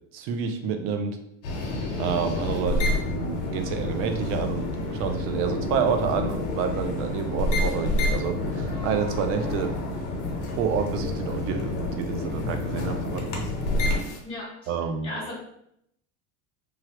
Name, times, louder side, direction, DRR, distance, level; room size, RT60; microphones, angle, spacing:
voice 1, 0.1-1.2 2.0-9.8 10.5-13.5 14.7-15.1, right 6 dB, 40° right, 7 dB, 0.4 m, -29 dB
sound 1, 1.4-14.2, left 2 dB, 85° left, 0.9 m, -28 dB
voice 2, 14.2-14.7 15.0-15.4, left 1 dB, 15° left, -6 dB, 0.9 m, -35 dB
3.1 x 2.3 x 2.8 m, 0.75 s
cardioid pair, 150°, 34 cm